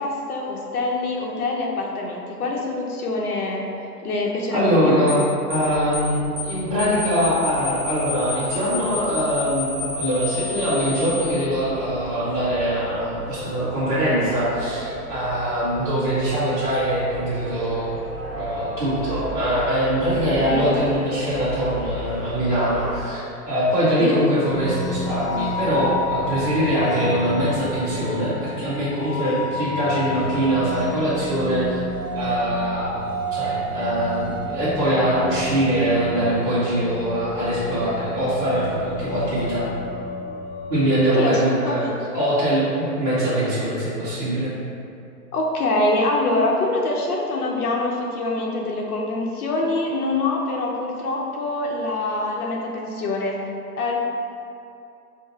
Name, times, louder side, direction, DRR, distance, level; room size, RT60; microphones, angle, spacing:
voice 1, 0.0-3.7 4.0-5.0 20.5-20.8 24.0-24.2 41.1-41.9 45.3-53.4 53.8-54.0, left 2 dB, 70° left, -1 dB, 0.7 m, -24 dB
voice 2, 4.5-5.2 5.5-17.9 18.3-31.8 32.1-33.0 33.3-39.6 40.7-41.8 42.1-44.5, equal, 5° right, -15 dB, 1.3 m, -22 dB
sound 1, 5.1-5.2 5.5-5.7 5.9-6.1 6.4-6.5 6.8-11.3, left 4 dB, 35° right, 0.8 m, -30 dB
sound 2, 5.5-23.0, equal, 55° right, 1.1 m, -35 dB
sound 3, 24.4-41.1, left 1 dB, 35° left, 0.8 m, -31 dB
5.0 x 2.1 x 4.1 m, 2.6 s
hypercardioid pair, 150°, 47 cm